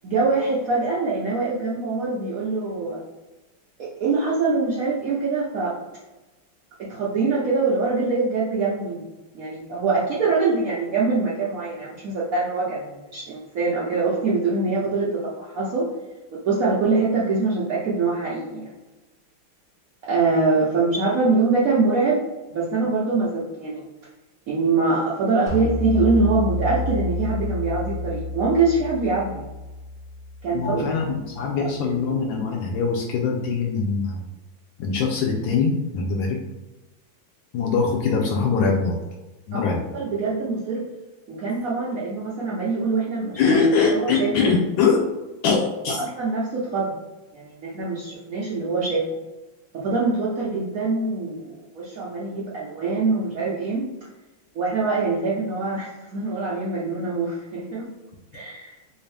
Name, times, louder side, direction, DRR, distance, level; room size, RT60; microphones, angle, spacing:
voice 1, 0.0-3.0 3.8-5.7 6.8-9.0 9.3-15.9 16.3-18.7 20.0-22.2 22.5-23.8 24.5-29.4 30.4-31.1 31.6-31.7 39.5-39.6 39.9-40.8 41.3-43.4 43.9-44.5 46.0-46.9 47.3-49.0 49.7-53.9 54.5-57.9 58.3-58.8, right 3 dB, 80° right, -5 dB, 0.7 m, -24 dB
sound 1, 25.5-30.9, left 2 dB, 25° right, 0.7 m, -29 dB
voice 2, 30.5-34.2 34.8-36.4 37.5-38.9 39.5-39.8 43.4-45.0 45.4-46.0, left 5 dB, 75° left, 0 dB, 1.2 m, -22 dB
3.4 x 2.7 x 3.2 m, 1.1 s
omnidirectional pair, 2.3 m